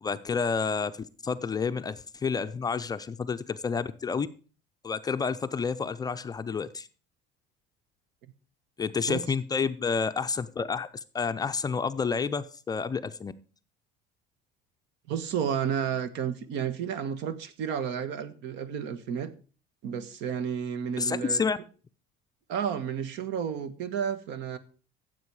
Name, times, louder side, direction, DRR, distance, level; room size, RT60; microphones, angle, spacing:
voice 1, 0.0-4.3 4.8-6.9 8.8-10.9 11.1-13.3 21.0-21.6, left 5 dB, 20° left, 0.5 m, -29 dB
voice 2, 15.1-19.3 19.8-21.4 22.5-24.6, right 8 dB, 65° right, 1.4 m, -31 dB
15.0 x 7.5 x 4.8 m
cardioid pair, 145°, 20 cm